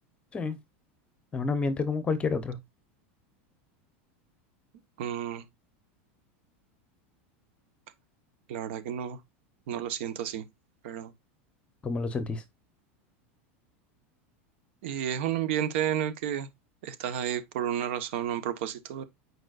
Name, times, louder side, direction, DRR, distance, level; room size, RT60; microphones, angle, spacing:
voice 1, 1.3-2.6 11.8-12.4, left 4 dB, 15° left, 0.9 m, -29 dB
voice 2, 5.0-5.4 8.5-9.2 9.7-10.4 10.8-11.1 14.8-16.5 16.8-19.0, right 10 dB, 70° right, 1.2 m, -31 dB
9.1 x 4.8 x 2.5 m
supercardioid pair, 155°, 7 cm